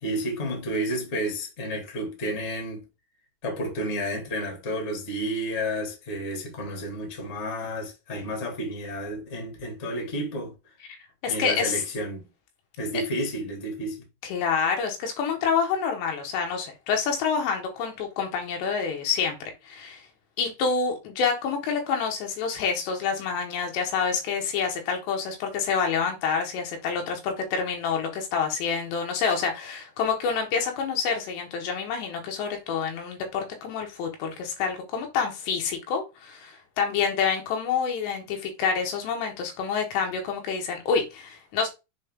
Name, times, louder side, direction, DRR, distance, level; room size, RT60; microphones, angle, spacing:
voice 1, 0.0-2.8 3.4-10.5 11.3-12.2 12.8-14.0, equal, 25° left, 1.5 m, -31 dB
voice 2, 11.2-11.8 14.2-19.4 19.7-20.1 20.4-41.7, left 6 dB, 85° left, 3.7 m, -27 dB
7.5 x 4.1 x 3.7 m
omnidirectional pair, 4.8 m